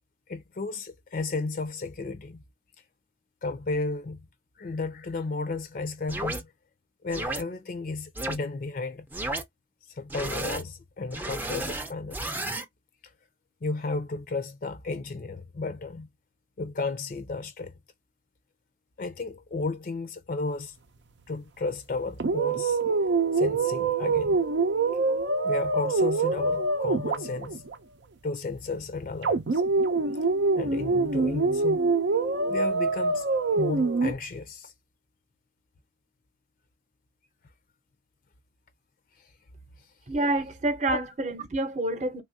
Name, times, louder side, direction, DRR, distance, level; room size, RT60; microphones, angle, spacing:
voice 1, 0.3-2.4 3.4-4.2 4.6-6.5 7.0-9.1 9.9-12.2 13.6-16.1 16.6-17.7 19.0-20.7 21.3-22.8 23.3-24.4 25.4-27.6 28.2-29.6 30.5-31.8 32.5-33.3 33.6-34.7 40.9-41.0, left 3 dB, 50° left, 0.5 m, -33 dB
sound 1, 6.1-6.4 7.1-7.4 8.2-8.4 9.1-9.4 10.1-10.6 11.1-12.6, right 2 dB, 10° right, 0.4 m, -32 dB
sound 2, 22.2-27.8 29.2-34.1, right 3 dB, 80° right, 0.5 m, -25 dB
voice 2, 40.1-42.2, right 2 dB, 40° right, 0.7 m, -28 dB
3.4 x 2.4 x 2.6 m
head